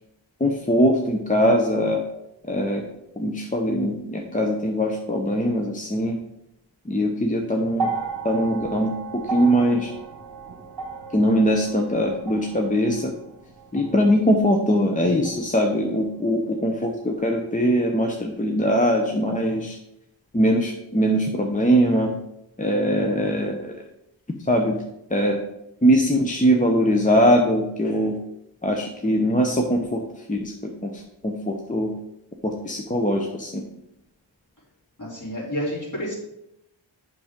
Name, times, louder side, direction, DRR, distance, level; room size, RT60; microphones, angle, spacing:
voice 1, 0.4-2.0 2.5-2.9 3.2-6.2 6.9-8.0 8.2-9.9 11.1-13.1 13.7-19.8 20.3-22.1 22.6-23.8 24.5-24.8 25.1-25.4 25.8-28.2 28.6-30.0 30.3-31.9 32.4-33.6, equal, 15° left, 2 dB, 0.7 m, -21 dB
sound 1, 7.7-16.1 17.1-17.2, right 4 dB, 50° right, 1.2 m, -35 dB
voice 2, 35.0-36.2, equal, 40° left, -5 dB, 3.2 m, -29 dB
7.7 x 6.1 x 3.7 m, 0.83 s
wide cardioid pair, 70°, 47 cm